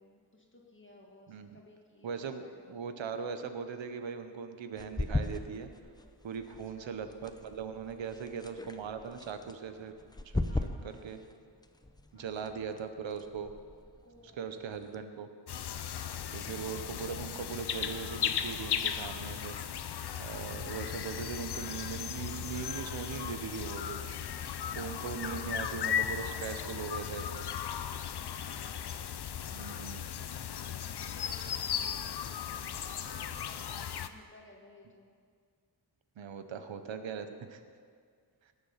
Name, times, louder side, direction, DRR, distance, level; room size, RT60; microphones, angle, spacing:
voice 1, 0.0-2.1 2.4-2.6 6.5-7.0 8.1-8.7 10.5-11.2 12.1-12.8 14.0-14.6 27.9-29.0 31.0-32.6 33.0-35.1, left 1 dB, 25° left, -1 dB, 1.7 m, -58 dB
voice 2, 1.3-1.6 2.0-5.7 6.2-9.9 10.3-10.4 10.8-11.2 12.1-13.5 14.4-15.3 16.3-19.6 20.2-24.1 24.7-27.5 29.5-30.1 36.2-37.6, right 6 dB, 85° right, 9 dB, 0.9 m, -40 dB
sound 1, 4.8-15.0, left 2 dB, 10° left, 0.6 m, -40 dB
sound 2, 15.5-34.1, left 9 dB, 60° left, 0.7 m, -36 dB
19.0 x 7.4 x 5.6 m, 2.1 s
wide cardioid pair, 100°, 44 cm